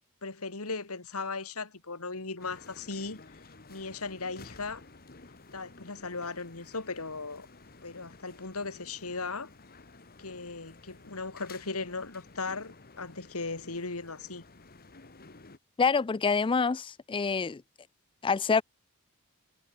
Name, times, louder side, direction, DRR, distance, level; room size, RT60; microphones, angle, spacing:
voice 1, 0.2-3.2 3.7-4.8 5.5-7.5 7.8-9.5 10.2-14.4, left 4 dB, 75° left, 2.3 m, -37 dB
sound 1, 2.4-15.6, left 3 dB, 45° left, 1.9 m, -53 dB
voice 2, 15.8-17.6 18.2-18.6, left 5 dB, 25° left, 0.4 m, -26 dB
head